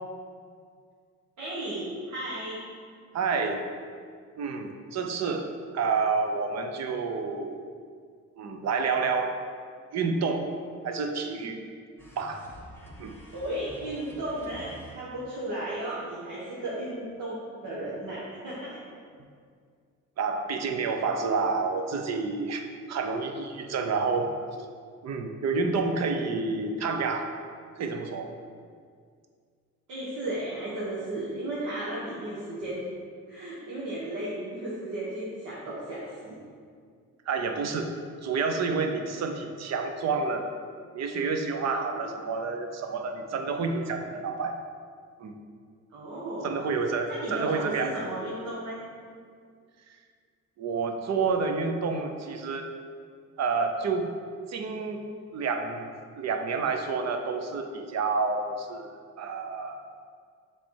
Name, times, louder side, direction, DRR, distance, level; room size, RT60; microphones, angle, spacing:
voice 1, 1.4-2.6 13.3-18.8 29.9-32.8 33.3-36.4 45.9-46.6 47.1-48.8, right 1 dB, 80° right, -8 dB, 1.4 m, -34 dB
voice 2, 3.1-3.6 4.4-5.5 5.7-7.6 8.4-9.4 9.9-10.5 10.8-11.6 12.2-12.4 13.0-13.2 20.2-24.3 25.0-27.3 27.8-28.3 37.3-37.9 38.2-40.5 40.9-44.6 45.2-45.4 46.4-47.9 50.6-52.7 53.4-54.1 54.5-55.0 55.3-55.9 56.2-59.8, right 4 dB, 60° right, 5 dB, 0.7 m, -29 dB
sound 1, 12.0-15.4, equal, 5° left, 1.0 m, -48 dB
7.0 x 3.4 x 4.6 m, 2.1 s
cardioid pair, 90°, 30 cm